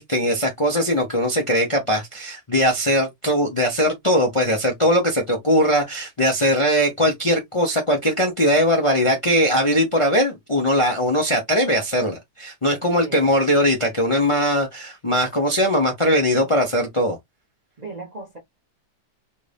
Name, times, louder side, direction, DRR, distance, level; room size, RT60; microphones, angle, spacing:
voice 1, 0.0-17.2, equal, 30° left, 0.6 m, -20 dB
voice 2, 12.9-13.3 17.8-18.4, right 3 dB, 35° right, 0.7 m, -36 dB
3.2 x 2.6 x 3.3 m
omnidirectional pair, 1.8 m